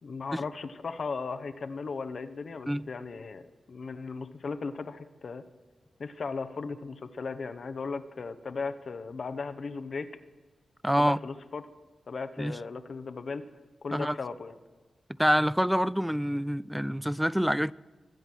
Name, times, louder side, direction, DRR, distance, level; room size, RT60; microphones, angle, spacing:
voice 1, 0.0-5.4 6.0-10.1 11.0-11.6 12.1-13.4 13.8-14.6, left 4 dB, 65° left, 0.8 m, -37 dB
voice 2, 10.8-11.2 12.4-12.6 13.9-14.2 15.2-17.7, equal, 5° right, 0.4 m, -26 dB
22.5 x 8.0 x 6.1 m
cardioid pair, 40°, 0 cm